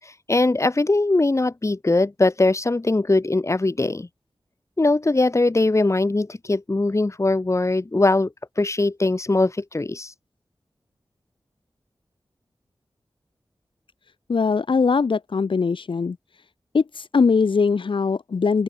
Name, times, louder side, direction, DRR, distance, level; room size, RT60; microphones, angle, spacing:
voice 1, 0.0-4.1 4.8-8.3 8.6-10.1, left 2 dB, 35° left, 5.0 m, -21 dB
voice 2, 14.3-16.2 16.7-18.6, left 5 dB, 80° left, 2.7 m, -21 dB
open air
wide cardioid pair, 80°, 8 cm